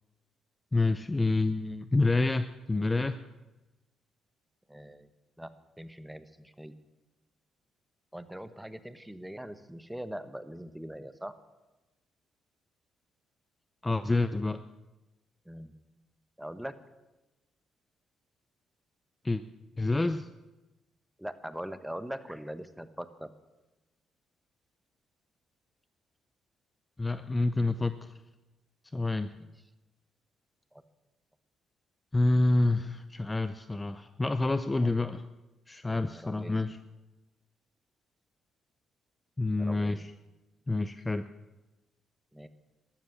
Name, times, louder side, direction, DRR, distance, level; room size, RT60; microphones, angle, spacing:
voice 1, 0.7-3.2 13.8-14.6 19.2-19.4 19.8-20.3 27.0-28.1 28.9-29.3 32.1-35.3 35.7-36.8 39.4-40.0 40.7-41.2, left 2 dB, 20° left, 12 dB, 0.6 m, -28 dB
voice 2, 4.7-5.1 5.4-5.5 5.8-6.7 8.1-11.4 15.4-15.7 16.4-16.7 21.2-23.3 29.4-29.5 30.7-30.8 34.8-34.9 35.8-36.6 39.6-40.0 42.3-42.5, equal, 5° right, 12 dB, 1.1 m, -42 dB
13.0 x 13.0 x 7.2 m, 1.1 s
cardioid pair, 90°, 0 cm